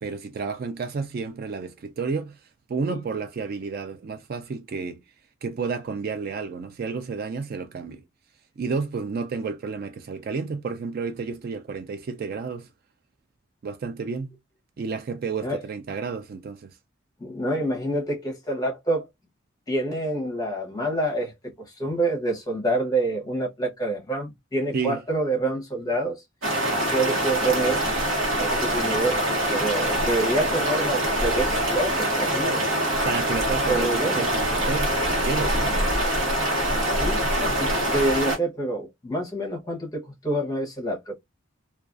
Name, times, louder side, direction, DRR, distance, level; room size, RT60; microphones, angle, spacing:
voice 1, 0.0-2.4 2.7-5.0 5.4-8.0 8.6-12.7 13.6-14.3 14.8-16.7 24.7-25.0 33.0-35.8, right 4 dB, 45° right, 0.3 m, -31 dB
voice 2, 17.2-19.1 19.7-26.2 26.8-27.9 28.4-32.6 33.7-34.3 36.8-41.1, right 1 dB, 20° left, 0.8 m, -27 dB
sound 1, 26.4-38.4, right 1 dB, 70° right, 1.0 m, -24 dB
2.4 x 2.3 x 2.4 m
head